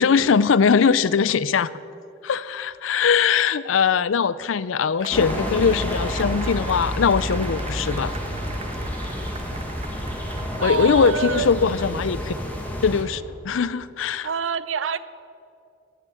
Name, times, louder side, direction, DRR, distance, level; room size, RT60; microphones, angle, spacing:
voice 1, 0.0-1.7 2.2-8.1 10.6-12.3 12.8-14.3, left 6 dB, 85° left, 18 dB, 0.5 m, -21 dB
Cheering / Applause / Crowd, 5.0-12.2, right 4 dB, 35° right, 0.9 m, -40 dB
strong wind and that helicopter, 5.1-13.0, equal, 10° left, 1.8 m, -29 dB
voice 2, 10.6-11.6 14.2-15.0, right 6 dB, 80° right, 16 dB, 0.6 m, -26 dB
16.5 x 7.9 x 7.7 m, 2.6 s
head